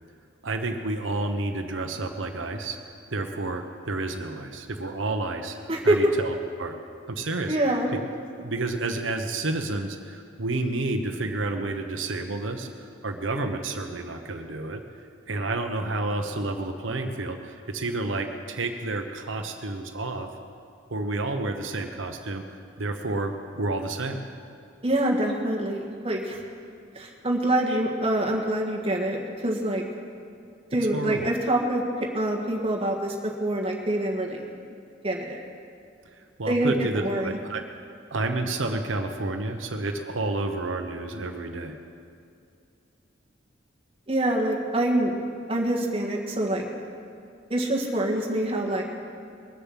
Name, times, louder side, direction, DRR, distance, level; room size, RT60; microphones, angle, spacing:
voice 1, 0.4-2.8 3.1-5.6 5.8-6.8 7.1-7.6 8.4-14.8 15.3-20.3 20.9-22.4 22.8-24.2 30.9-31.3 36.1-37.6 38.1-41.8, right 2 dB, 90° right, 4 dB, 1.0 m, -30 dB
voice 2, 5.7-6.1 7.5-7.9 24.8-26.4 26.9-29.8 30.7-31.8 32.1-33.1 33.4-34.5 35.0-35.4 36.5-37.4 44.1-45.1 45.5-46.7 47.5-48.8, right 1 dB, 30° right, -1 dB, 1.6 m, -25 dB
20.5 x 7.0 x 7.4 m, 2.5 s
head